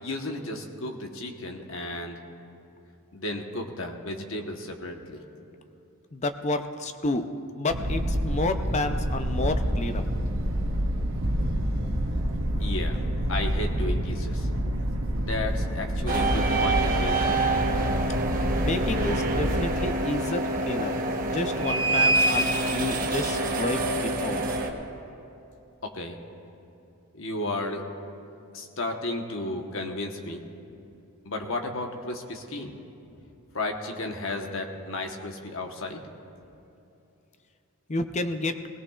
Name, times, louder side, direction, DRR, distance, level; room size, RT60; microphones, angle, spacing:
voice 1, 0.0-2.2 3.1-5.2 12.6-13.0 13.3-14.5 15.1-17.4 25.8-26.2 27.1-27.8 28.5-30.5 31.2-32.7 33.5-36.0, left 2 dB, 60° left, 3 dB, 1.2 m, -33 dB
voice 2, 6.1-7.3 7.6-10.0 18.6-20.9 21.2-24.4 37.9-38.6, left 2 dB, 30° left, 7 dB, 0.6 m, -30 dB
sound 1, 7.7-19.7, equal, 60° right, 1.1 m, -28 dB
sound 2, 16.1-24.7, right 2 dB, 40° right, 1.0 m, -26 dB
20.0 x 17.5 x 2.4 m, 2.8 s
head